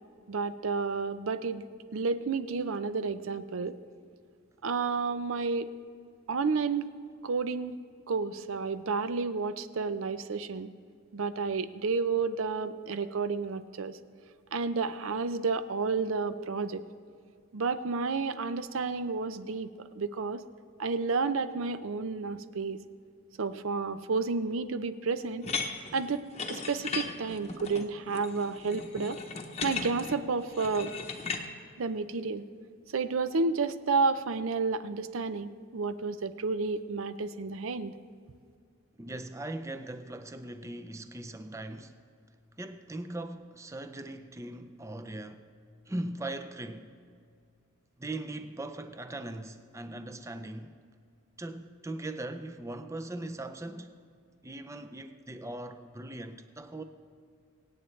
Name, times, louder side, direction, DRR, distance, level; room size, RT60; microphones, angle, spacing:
voice 1, 0.3-1.6 1.9-3.8 4.6-5.7 6.3-6.9 7.2-7.7 8.1-10.7 11.1-14.0 14.5-16.8 17.5-19.7 19.9-20.4 20.8-22.8 23.4-25.5 25.9-29.2 29.6-30.9 31.8-32.4 32.9-37.9, right 4 dB, 80° right, 0.6 m, -31 dB
sound 1, 25.4-31.4, left 4 dB, 30° left, 0.8 m, -37 dB
voice 2, 39.0-41.9 42.6-45.4 45.9-46.9 48.0-50.7 51.4-53.9 54.4-56.8, right 1 dB, 15° right, 0.5 m, -40 dB
24.5 x 8.7 x 3.2 m
head